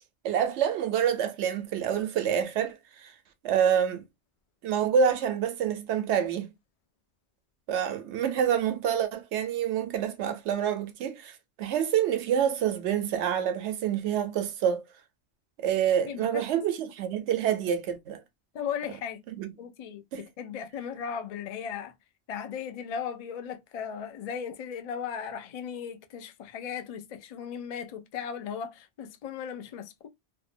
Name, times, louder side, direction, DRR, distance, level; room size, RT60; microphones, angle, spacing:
voice 1, 0.2-3.1 3.4-4.0 4.6-6.5 7.7-14.8 15.6-18.2 19.3-19.5 20.1-20.2, right 8 dB, 90° right, 0.9 m, -27 dB
voice 2, 16.0-16.4 18.5-19.2 19.6-21.9 22.3-30.1, left 7 dB, 60° left, 0.4 m, -37 dB
2.6 x 2.1 x 2.5 m
omnidirectional pair, 1.1 m